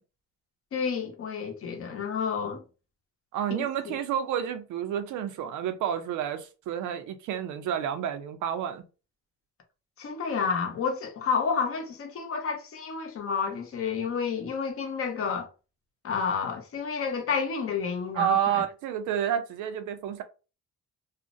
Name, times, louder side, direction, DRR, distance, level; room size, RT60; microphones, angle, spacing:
voice 1, 0.7-2.6 3.5-4.0 10.0-15.5 16.0-18.6, left 6 dB, 50° left, 0.7 m, -30 dB
voice 2, 3.3-8.8 18.1-20.2, right 9 dB, 80° right, 0.5 m, -29 dB
2.5 x 2.0 x 2.5 m
cardioid pair, 100°, 29 cm